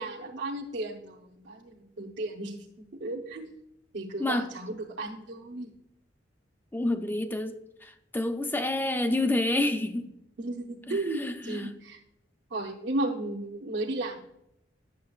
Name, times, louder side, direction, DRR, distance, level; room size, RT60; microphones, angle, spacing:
voice 1, 0.0-3.5 3.9-5.7 10.4-12.0 12.5-14.2, right 2 dB, 75° right, 0.9 m, -34 dB
voice 2, 4.2-4.5 6.7-10.1 10.9-11.7, left 2 dB, 10° left, 0.5 m, -29 dB
10.5 x 7.3 x 2.4 m
head